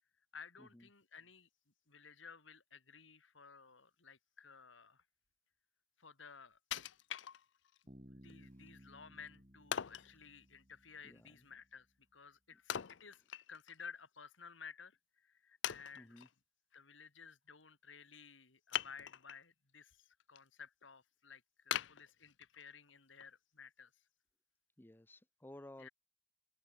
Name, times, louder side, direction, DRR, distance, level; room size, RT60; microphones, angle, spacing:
voice 1, 0.3-1.5 1.9-5.0 6.0-6.6 8.1-11.9 12.1-13.2 13.5-16.2 16.7-23.9 25.8-25.9, left 6 dB, 90° left, 2.9 m, -55 dB
Wood, 6.7-7.8 8.3-8.4 9.7-10.1 12.7-13.8 14.1-14.2 14.9-15.0 15.6-16.3 18.7-19.5 19.9-20.4 20.8-20.9 21.7-22.7 23.2-23.3, left 10 dB, 75° left, 0.5 m, -41 dB
Bass guitar, 7.9-11.6, equal, 30° right, 3.4 m, -60 dB
voice 2, 16.0-16.3 24.8-25.9, left 1 dB, 10° left, 0.6 m, -55 dB
open air
head